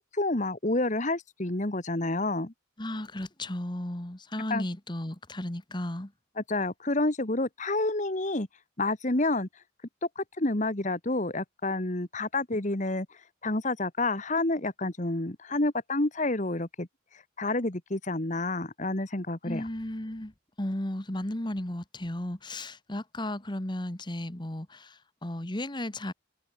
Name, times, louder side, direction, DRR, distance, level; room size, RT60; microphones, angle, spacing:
voice 1, 0.1-2.5 4.5-4.6 6.4-8.5 8.8-9.5 10.2-13.1 13.4-16.9 17.4-19.6, left 2 dB, 40° left, 1.7 m, -29 dB
voice 2, 2.8-6.1 19.4-26.1, left 1 dB, 25° left, 1.5 m, -34 dB
head